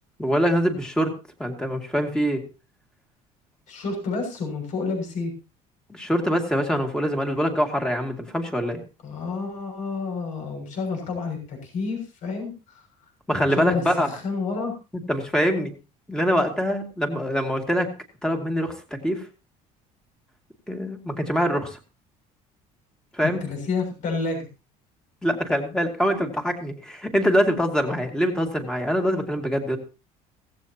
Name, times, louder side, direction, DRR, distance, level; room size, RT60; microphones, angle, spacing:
voice 1, 0.2-1.1 1.4-2.4 5.9-8.8 13.3-14.1 15.1-15.7 16.1-17.9 18.2-18.7 19.0-19.2 20.7-21.8 23.2-23.4 25.2-29.8, equal, 5° left, 4 dB, 2.4 m, -24 dB
voice 2, 3.7-5.3 9.0-12.8 13.4-14.7 23.2-24.5, left 4 dB, 55° left, 3 dB, 6.6 m, -29 dB
17.0 x 15.5 x 2.9 m, 0.30 s
cardioid pair, 150°, 15 cm